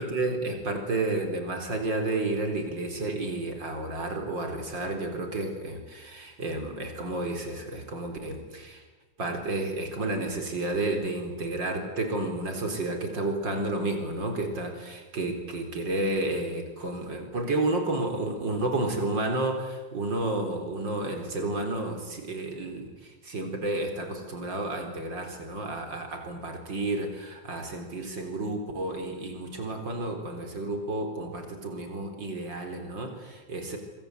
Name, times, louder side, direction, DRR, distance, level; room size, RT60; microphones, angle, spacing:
voice 1, 0.0-8.8 9.2-33.8, right 2 dB, 65° right, 4 dB, 4.8 m, -31 dB
26.0 x 24.5 x 8.1 m, 1.3 s
omnidirectional pair, 2.1 m